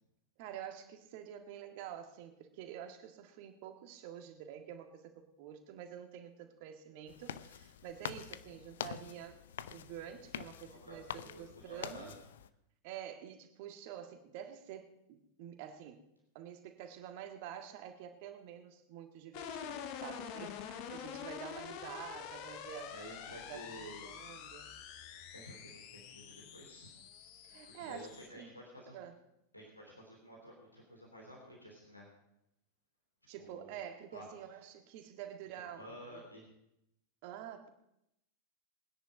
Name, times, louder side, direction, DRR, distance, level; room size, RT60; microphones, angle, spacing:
voice 1, 0.4-9.4 9.7-12.1 12.8-16.0 16.4-22.9 23.3-24.7 27.4-28.1 28.3-28.5 28.9-29.2 33.3-36.2 37.2-37.7, right 10 dB, 45° right, 6 dB, 1.7 m, -48 dB
sound 1, 7.1-12.5, left 10 dB, 60° left, 0.6 m, -46 dB
voice 2, 10.7-12.1 20.8-20.9 21.6-21.7 22.9-24.1 25.3-26.9 27.6-29.0 29.5-32.1 33.4-34.3 35.5-36.5, equal, 85° left, -1 dB, 3.1 m, -52 dB
sound 2, 19.3-28.3, left 8 dB, 45° left, 1.4 m, -46 dB
20.0 x 10.0 x 5.2 m, 0.83 s
figure-of-eight pair, 90°, 0 cm